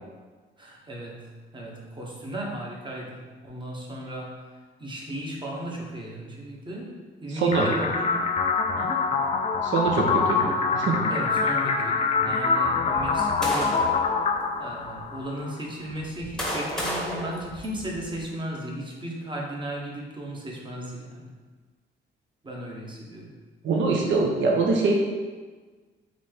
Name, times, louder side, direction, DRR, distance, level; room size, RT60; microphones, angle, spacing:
voice 1, 0.6-4.4 4.8-8.3 8.8-9.1 11.1-13.8 14.6-21.3 22.4-23.4, right 1 dB, 25° right, -2 dB, 1.0 m, -36 dB
voice 2, 7.3-7.7 9.6-11.1 23.6-24.9, right 4 dB, 70° right, 0 dB, 0.7 m, -24 dB
sound 1, 7.5-15.5, left 4 dB, 30° left, 0.4 m, -25 dB
sound 2, 12.9-14.1 14.8-15.0 15.9-18.2, equal, 5° left, 1.0 m, -32 dB
4.0 x 3.2 x 3.4 m, 1.4 s
cardioid pair, 90°, 20 cm